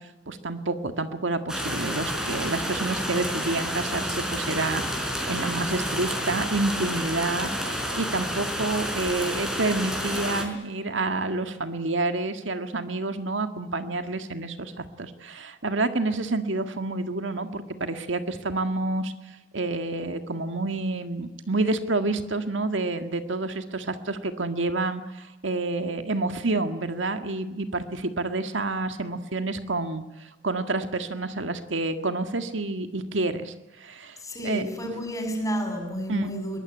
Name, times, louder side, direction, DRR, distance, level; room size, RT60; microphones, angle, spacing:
voice 1, 0.3-34.7 36.1-36.3, right 2 dB, 80° right, 8 dB, 1.8 m, -29 dB
sound 1, 1.5-10.4, equal, 5° right, 4.7 m, -30 dB
voice 2, 34.2-36.6, equal, 20° left, 4 dB, 6.8 m, -31 dB
22.5 x 20.0 x 9.9 m, 1.0 s
head